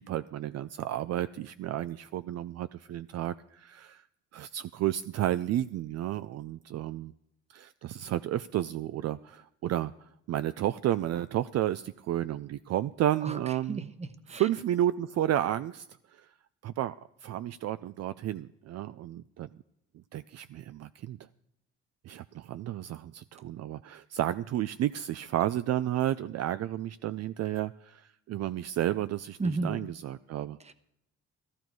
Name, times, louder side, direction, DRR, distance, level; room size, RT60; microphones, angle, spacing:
voice 1, 0.0-4.0 4.3-7.1 7.5-13.9 14.3-15.9 16.1-16.3 16.6-16.9 17.2-19.5 20.1-21.2 22.0-30.6, right 12 dB, 60° right, 13 dB, 0.4 m, -32 dB
voice 2, 13.7-14.5 29.4-29.8 30.6-30.7, right 3 dB, 20° right, 11 dB, 1.0 m, -33 dB
14.5 x 13.5 x 4.6 m, 0.80 s
cardioid pair, 90°, 30 cm